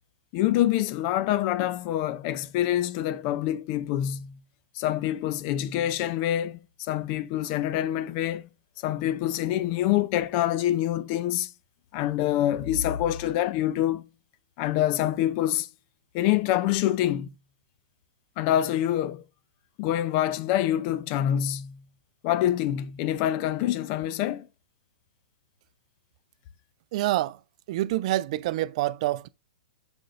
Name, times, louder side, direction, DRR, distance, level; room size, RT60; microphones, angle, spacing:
voice 1, 0.3-4.4 4.7-8.5 8.8-11.5 11.9-14.0 14.6-15.7 16.1-17.3 18.4-19.2 19.8-21.8 22.2-24.5, left 12 dB, 40° left, 0.6 m, -26 dB
voice 2, 26.9-27.4 27.7-29.3, right 16 dB, 50° right, 0.4 m, -27 dB
7.6 x 5.3 x 2.5 m
hypercardioid pair, 120°, 5 cm